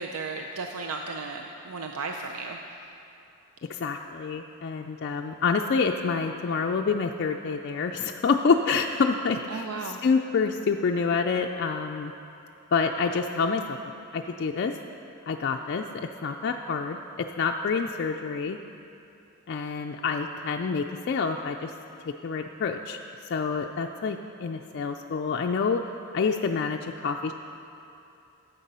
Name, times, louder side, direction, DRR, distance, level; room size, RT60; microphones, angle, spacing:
voice 1, 0.0-2.8 9.5-10.0, right 3 dB, 80° right, 3 dB, 0.5 m, -35 dB
voice 2, 3.7-12.1 12.7-13.8 14.1-14.8 15.3-18.6 19.5-21.7 22.1-23.0 23.2-25.9 26.1-27.3, left 5 dB, 50° left, 3 dB, 0.3 m, -27 dB
11.0 x 7.9 x 5.4 m, 2.7 s
head